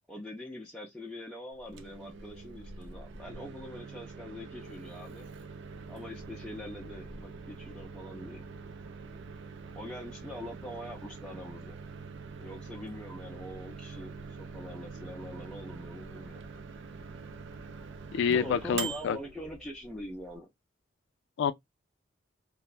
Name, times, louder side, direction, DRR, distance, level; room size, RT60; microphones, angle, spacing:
voice 1, 0.1-5.3 5.9-8.4 9.7-11.8 12.4-14.1 14.4-16.4 18.3-20.5, equal, 5° left, 0.5 m, -43 dB
Microwave oven, 1.6-20.4, right 5 dB, 60° right, 0.4 m, -44 dB
voice 2, 18.1-19.2 21.4-21.5, left 7 dB, 60° left, 0.3 m, -27 dB
3.2 x 2.0 x 2.4 m
head